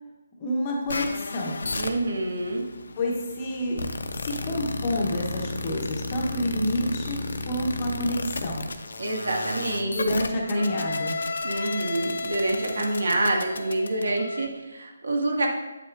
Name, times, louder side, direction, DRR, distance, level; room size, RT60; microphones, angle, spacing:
voice 1, 0.4-1.6 3.0-3.8 4.2-8.7 9.9-11.2, left 1 dB, 20° left, -1 dB, 0.9 m, -28 dB
sound 1, 0.9-14.5, left 3 dB, 70° left, 0.8 m, -33 dB
voice 2, 1.8-2.6 9.0-10.0 10.5-10.7 11.4-15.5, right 2 dB, 70° right, 0 dB, 1.8 m, -27 dB
8.4 x 7.7 x 2.5 m, 1.1 s
hypercardioid pair, 175°, 0 cm